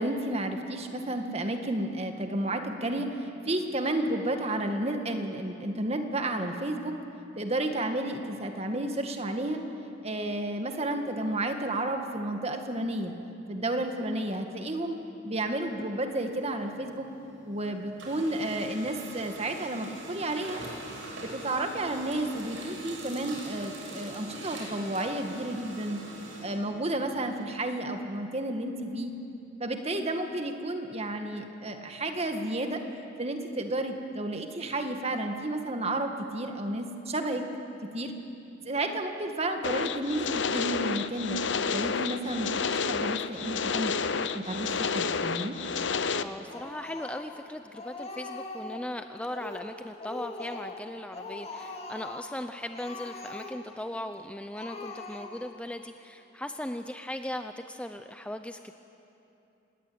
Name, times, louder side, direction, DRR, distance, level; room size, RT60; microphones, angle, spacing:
voice 1, 0.0-7.0 7.4-9.6 10.0-13.1 13.5-15.0 15.2-17.1 17.5-20.6 21.2-26.0 26.4-29.1 29.6-32.8 33.2-37.5 37.9-38.1 38.6-41.4 41.7-45.6, right 1 dB, 35° right, 5 dB, 1.9 m, -31 dB
Printer, 16.3-17.6 17.9-27.4, right 2 dB, 80° right, 6.8 m, -43 dB
sound 1, 39.6-46.2, left 5 dB, 70° left, 0.9 m, -30 dB
voice 2, 46.2-58.7, left 1 dB, 5° left, 7 dB, 0.6 m, -38 dB
Speech, 46.5-47.4 47.7-48.9 49.2-49.7 50.0-50.8 51.1-52.3 52.7-53.8 54.1-54.2 54.5-55.6, left 3 dB, 35° left, 2.5 m, -41 dB
26.5 x 20.5 x 8.8 m, 2.8 s
head